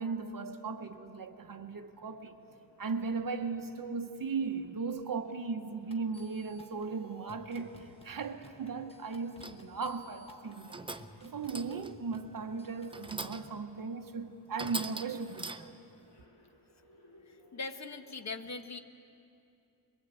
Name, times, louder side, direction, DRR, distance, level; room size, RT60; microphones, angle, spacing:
voice 1, 0.0-2.4 2.8-10.8 11.2-15.8, right 4 dB, 50° right, 1.0 m, -37 dB
sound 1, 0.9-18.3, left 1 dB, 80° left, 4.7 m, -66 dB
sound 2, 5.9-13.3, left 1 dB, 15° left, 1.2 m, -57 dB
sound 3, 9.4-9.8 10.4-11.2 11.5-12.0 12.9-13.6 14.0-14.1 14.6-15.9, right 2 dB, 10° right, 0.5 m, -42 dB
voice 2, 17.3-18.8, left 3 dB, 40° left, 1.1 m, -41 dB
22.5 x 22.0 x 8.3 m
wide cardioid pair, 170°, 42 cm